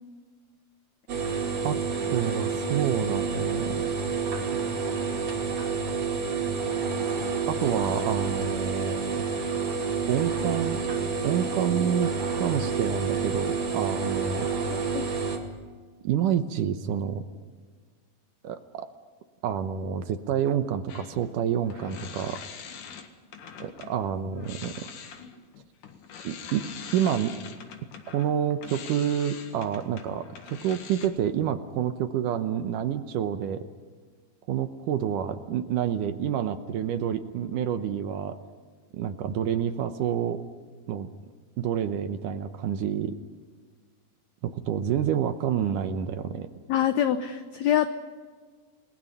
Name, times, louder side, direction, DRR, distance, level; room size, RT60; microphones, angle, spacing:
sound 1, 1.1-15.4, right 5 dB, 45° right, 3.3 m, -29 dB
voice 1, 2.1-3.9 7.5-9.2 9.6-9.7 10.1-10.8 11.2-14.5 16.0-17.2 18.4-18.9 19.4-22.4 23.6-24.9 26.2-26.7 26.9-27.3 28.1-33.7 34.5-38.4 38.9-40.4 40.9-41.1 41.6-43.1 44.4-46.5, right 9 dB, 75° right, 9 dB, 2.2 m, -28 dB
sound 2, 20.9-24.0 24.3-31.1, left 7 dB, 60° left, 3.0 m, -43 dB
voice 2, 46.7-47.9, left 10 dB, 85° left, 9 dB, 1.6 m, -24 dB
29.5 x 19.5 x 5.6 m, 1.5 s
omnidirectional pair, 4.3 m